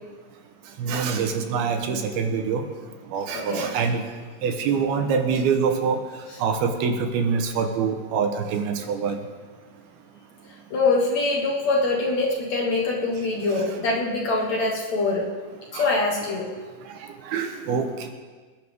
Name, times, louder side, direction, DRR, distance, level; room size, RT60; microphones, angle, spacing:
voice 1, 0.8-2.7 3.1-4.0 4.4-6.0 6.4-9.2 15.7-15.9 17.3-18.1, right 6 dB, 80° right, 5 dB, 3.0 m, -25 dB
voice 2, 3.3-3.7 10.7-15.3 15.7-16.5, left 3 dB, 55° left, -1 dB, 2.4 m, -24 dB
26.5 x 10.5 x 3.7 m, 1.4 s
omnidirectional pair, 4.5 m